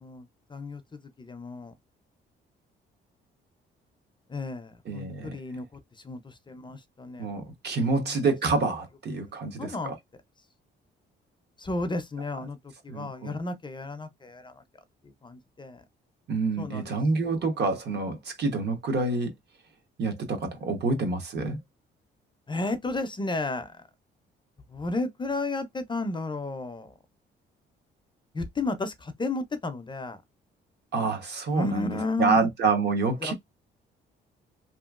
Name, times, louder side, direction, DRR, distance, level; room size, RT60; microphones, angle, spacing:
voice 1, 0.0-1.7 4.3-8.4 9.6-9.9 11.6-14.6 15.0-15.8 16.6-17.0 17.2-17.4 22.5-23.9 24.7-26.9 28.3-30.2 31.5-32.5 33.2-33.3, left 2 dB, 25° left, 0.5 m, -33 dB
voice 2, 4.9-5.4 7.2-9.9 12.9-13.4 16.3-19.3 20.0-21.6 30.9-33.3, right 3 dB, 55° right, 1.0 m, -27 dB
2.9 x 2.4 x 2.4 m
cardioid pair, 90°, 20 cm